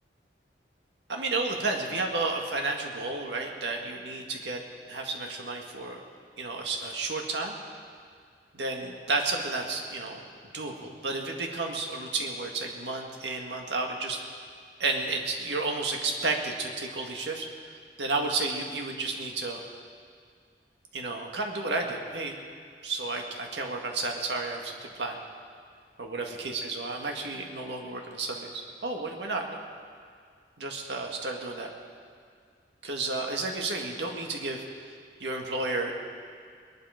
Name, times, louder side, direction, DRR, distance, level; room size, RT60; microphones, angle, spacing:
voice 1, 1.1-4.6 4.9-6.0 6.4-7.6 8.5-10.2 10.5-14.2 14.8-19.6 20.9-22.4 22.8-25.2 26.0-29.6 30.6-31.7 32.8-34.9 35.2-35.9, right 3 dB, 80° right, 2 dB, 1.8 m, -32 dB
21.5 x 11.5 x 5.1 m, 2.1 s
head